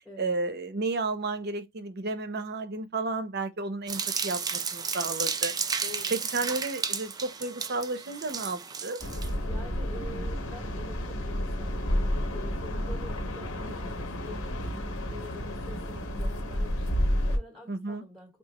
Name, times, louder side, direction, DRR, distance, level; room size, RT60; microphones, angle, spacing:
voice 1, 0.2-5.5 6.1-9.0 17.7-18.0, right 3 dB, 50° right, 0.6 m, -32 dB
sound 1, 3.9-9.3, right 6 dB, 20° right, 0.3 m, -33 dB
voice 2, 5.8-6.2 9.5-18.4, left 1 dB, 5° left, 0.9 m, -47 dB
sound 2, 9.0-17.4, equal, 70° left, 1.0 m, -31 dB
4.8 x 2.5 x 2.9 m
head